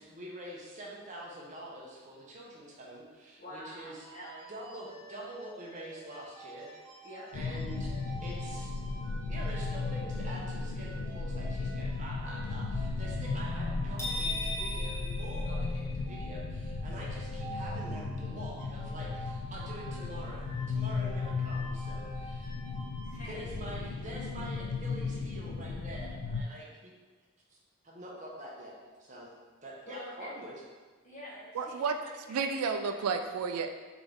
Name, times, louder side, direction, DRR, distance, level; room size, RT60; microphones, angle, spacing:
voice 1, 0.0-4.1 4.5-6.7 7.3-8.0 8.2-22.5 23.3-26.9 27.5-27.6 27.8-29.3 29.6-30.5, right 1 dB, 35° right, -3 dB, 0.8 m, -45 dB
voice 2, 3.4-4.5 7.0-7.3 17.0-17.1 23.0-23.5 29.8-30.3 31.0-32.4 32.8-33.0, left 1 dB, 35° left, -7 dB, 1.2 m, -47 dB
sound 1, 4.0-23.1, right 2 dB, 15° right, 1.1 m, -49 dB
sound 2, 7.3-26.4, left 3 dB, 90° left, 0.4 m, -36 dB
sound 3, 14.0-16.2, left 2 dB, 10° left, 0.7 m, -37 dB
voice 3, 31.5-32.0 32.3-33.7, right 5 dB, 85° right, 7 dB, 0.3 m, -31 dB
3.9 x 3.7 x 3.5 m, 1.4 s
head